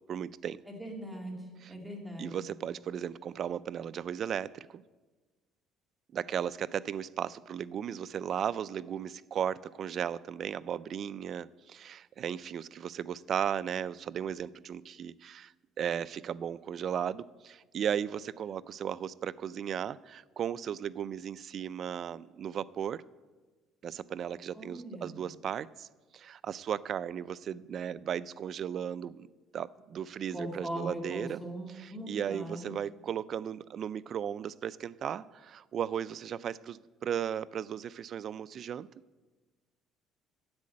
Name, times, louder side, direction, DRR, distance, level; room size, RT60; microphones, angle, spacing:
voice 1, 0.1-0.6 2.2-4.8 6.1-15.5 15.8-23.0 23.8-25.9 26.1-29.3 29.5-31.4 31.8-38.9, right 9 dB, 40° right, 17 dB, 0.3 m, -36 dB
voice 2, 0.7-2.3 24.5-25.2 30.3-32.8, right 1 dB, ahead, 0 dB, 2.2 m, -40 dB
10.5 x 7.5 x 8.6 m, 1.3 s
cardioid pair, 150°, 0 cm